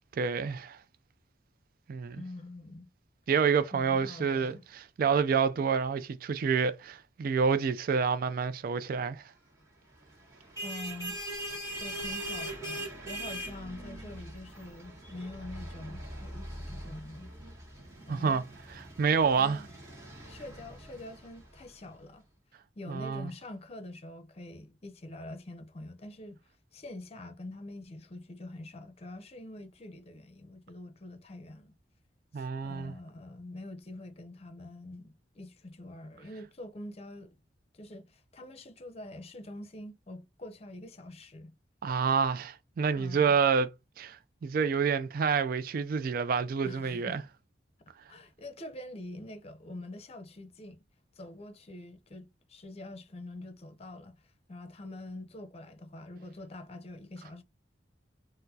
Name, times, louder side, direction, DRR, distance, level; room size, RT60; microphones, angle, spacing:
voice 1, 0.2-0.8 1.9-2.2 3.3-9.2 18.1-18.4 19.0-19.6 22.9-23.3 32.3-32.9 41.8-43.7 44.0-47.2, right 6 dB, 50° right, 0.3 m, -28 dB
voice 2, 2.1-2.9 3.7-4.6 10.6-11.2 11.8-17.3 18.1-18.4 19.4-19.7 20.3-22.2 22.8-26.4 26.7-31.7 32.3-37.4 37.7-41.5 43.0-43.4 46.6-47.3 48.1-50.8 51.2-54.2 54.5-57.4, left 2 dB, 35° left, 0.6 m, -45 dB
sound 1, 10.3-21.6, right 1 dB, 20° right, 1.7 m, -41 dB
4.3 x 2.0 x 2.7 m
head